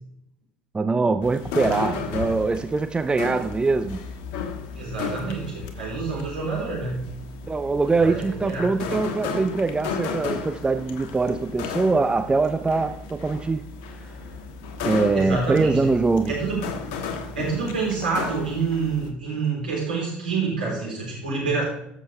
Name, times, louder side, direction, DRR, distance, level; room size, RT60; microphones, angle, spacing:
voice 1, 0.7-4.0 7.5-13.6 14.0-14.1 14.8-16.4, right 3 dB, 20° right, 9 dB, 0.6 m, -23 dB
sound 1, 1.2-19.1, left 4 dB, 70° left, 1.3 m, -34 dB
voice 2, 4.7-7.0 8.0-8.7 15.1-15.9 16.3-16.6 17.4-21.6, right 4 dB, 90° right, -5 dB, 3.9 m, -27 dB
15.5 x 7.3 x 3.3 m, 0.77 s
hypercardioid pair, 65°, 5 cm